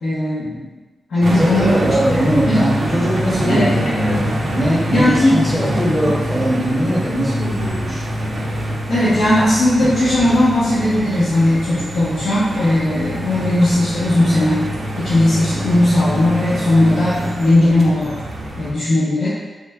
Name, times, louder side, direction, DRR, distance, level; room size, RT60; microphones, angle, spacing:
voice 1, 0.0-0.7 1.1-2.2 2.4-2.7 3.4-3.9 4.9-5.4 8.9-14.7 15.0-18.2 18.6-19.3, left 1 dB, 75° left, -11 dB, 0.9 m, -17 dB
sound 1, 1.2-18.7, right 1 dB, 50° right, 0.4 m, -25 dB
voice 2, 1.4-4.2 4.5-8.1, equal, 5° right, -6 dB, 0.7 m, -20 dB
3.2 x 2.1 x 3.4 m, 1.2 s
wide cardioid pair, 175°, 0 cm